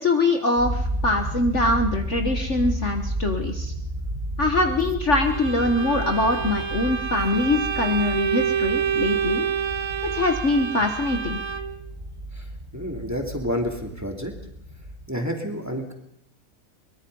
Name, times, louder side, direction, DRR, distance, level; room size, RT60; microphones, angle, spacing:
voice 1, 0.0-3.7 4.4-9.5 10.1-11.4, left 2 dB, 45° left, 4 dB, 1.7 m, -23 dB
sound 1, 0.6-15.1, right 1 dB, 30° right, 2.2 m, -32 dB
Bowed string instrument, 5.3-11.9, right 7 dB, 55° right, 1.4 m, -28 dB
voice 2, 12.7-14.3 15.1-15.9, equal, 10° right, 2 dB, 2.8 m, -29 dB
23.5 x 22.0 x 5.5 m, 0.71 s
omnidirectional pair, 1.8 m